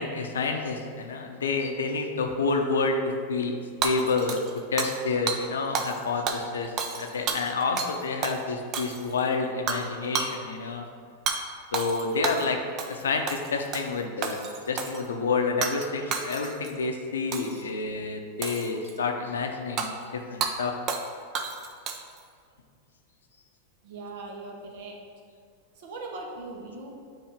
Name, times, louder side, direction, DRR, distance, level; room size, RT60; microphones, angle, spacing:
voice 1, 0.0-3.5 3.8-4.4 4.7-10.9 11.7-12.6 12.9-14.4 14.7-20.7, left 4 dB, 85° left, 4 dB, 0.6 m, -29 dB
Hammer / Shatter, 3.8-5.0 5.3-5.4 5.7-6.0 6.3-8.0 8.2-8.4 8.7-9.2 9.7-9.9 10.1-10.3 11.3-11.4 11.7-12.5 12.8-13.0 13.3-13.9 14.2-15.0 15.6-15.9 16.1-16.7 17.3-17.6 18.4-19.0 19.8-19.9 20.4-20.5 20.9-21.1 21.3-22.2, right 5 dB, 40° right, 0.6 m, -31 dB
voice 2, 23.8-25.0 25.7-27.0, right 3 dB, 65° right, 1 dB, 1.1 m, -39 dB
7.3 x 2.8 x 5.0 m, 2.1 s
hypercardioid pair, 105°, 0 cm